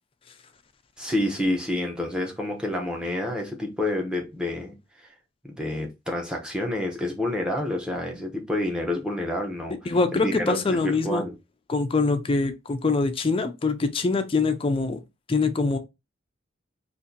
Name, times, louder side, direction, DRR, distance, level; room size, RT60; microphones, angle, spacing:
voice 1, 1.0-5.1 5.4-11.3, left 1 dB, 5° right, 0.7 m, -29 dB
voice 2, 9.9-11.2 11.7-15.0 15.3-15.8, left 3 dB, 25° left, 0.4 m, -24 dB
2.7 x 2.5 x 3.7 m
head